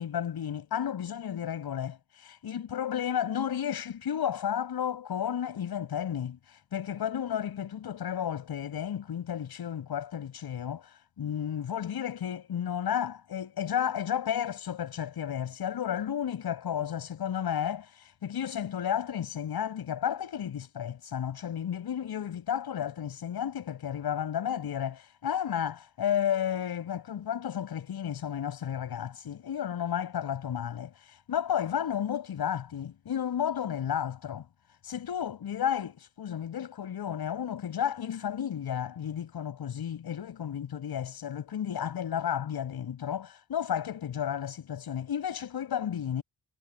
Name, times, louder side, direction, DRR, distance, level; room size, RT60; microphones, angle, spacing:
voice 1, 0.0-34.5 34.8-46.2, left 9 dB, 60° left, 6.3 m, -32 dB
cardioid pair, 100°, 43 cm